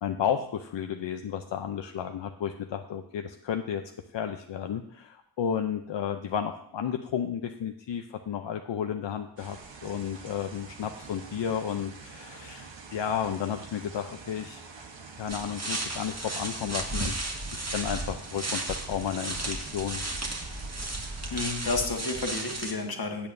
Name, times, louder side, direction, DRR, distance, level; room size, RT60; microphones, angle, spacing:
voice 1, 0.0-3.8 4.1-14.6 15.2-17.3 17.5-20.0, left 8 dB, 80° left, 5 dB, 0.6 m, -32 dB
sound 1, 9.4-21.4, right 4 dB, 85° right, 1.2 m, -46 dB
sound 2, 15.3-22.7, right 2 dB, 35° right, 1.6 m, -34 dB
voice 2, 21.3-23.3, left 3 dB, 55° left, 3 dB, 1.5 m, -31 dB
15.5 x 8.5 x 2.6 m, 0.68 s
wide cardioid pair, 70°, 43 cm